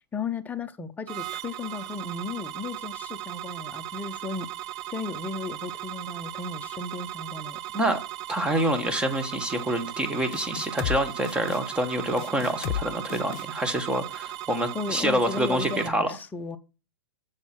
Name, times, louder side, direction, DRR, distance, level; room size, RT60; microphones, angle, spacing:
voice 1, 0.0-4.5 4.9-7.6 14.7-16.6, left 4 dB, 10° left, 0.8 m, -35 dB
sound 1, 1.1-15.9, right 14 dB, 30° right, 0.5 m, -37 dB
voice 2, 8.3-16.2, right 1 dB, 5° right, 1.4 m, -27 dB
sound 2, 10.3-11.0 11.2-11.6 12.2-12.8 13.1-13.5, left 13 dB, 45° left, 0.7 m, -32 dB
7.2 x 6.5 x 5.9 m
hypercardioid pair, 130°, 13 cm